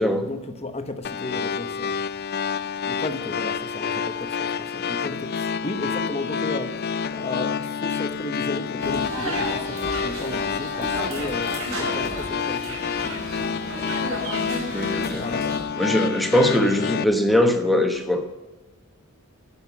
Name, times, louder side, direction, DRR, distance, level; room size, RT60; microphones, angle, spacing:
voice 1, 0.0-1.9 2.8-12.8 15.2-15.5, left 2 dB, 30° left, 0.9 m, -34 dB
sound 1, 1.0-17.0, left 6 dB, 50° left, 0.4 m, -28 dB
sound 2, 8.8-15.6, right 1 dB, 85° right, 4.9 m, -33 dB
voice 2, 14.7-15.3 15.7-18.2, left 1 dB, ahead, 1.1 m, -21 dB
12.0 x 5.7 x 8.3 m
head